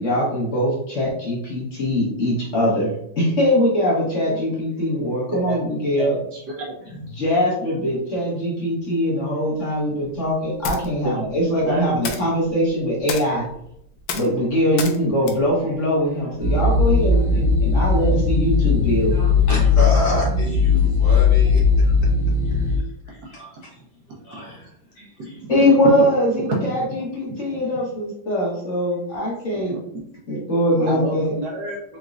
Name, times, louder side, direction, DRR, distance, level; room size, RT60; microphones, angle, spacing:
voice 1, 0.0-6.1 7.1-13.4 14.1-19.2 25.5-29.7 30.3-31.3, equal, 45° left, -5 dB, 1.3 m, -22 dB
voice 2, 5.3-5.6 5.9-6.7 11.0-11.3 11.6-11.9 21.4-21.5 25.2-25.5 27.5-27.6 29.7-30.0 30.8-32.0, right 1 dB, 65° right, -1 dB, 1.2 m, -29 dB
sound 1, 10.1-16.7, left 4 dB, 80° left, 1.3 m, -35 dB
sound 2, 16.4-22.8, left 4 dB, 40° right, 1.3 m, -18 dB
voice 3, 19.1-21.8 22.5-22.7 23.1-23.7 24.2-24.7 25.0-25.4, equal, 60° left, -3 dB, 1.6 m, -29 dB
4.1 x 3.7 x 2.4 m, 0.74 s
omnidirectional pair, 2.2 m